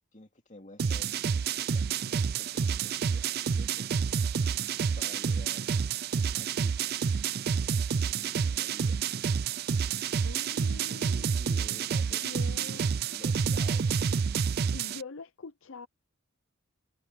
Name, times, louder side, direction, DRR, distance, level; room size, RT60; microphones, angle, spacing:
voice 1, 0.1-3.9 4.9-5.7 6.3-7.0 8.0-9.0 10.8-14.2, left 1 dB, 35° left, 2.6 m, -51 dB
sound 1, 0.8-15.0, right 6 dB, 45° right, 0.4 m, -29 dB
voice 2, 10.2-11.3 12.1-12.9 14.7-15.9, left 4 dB, 65° left, 0.6 m, -44 dB
head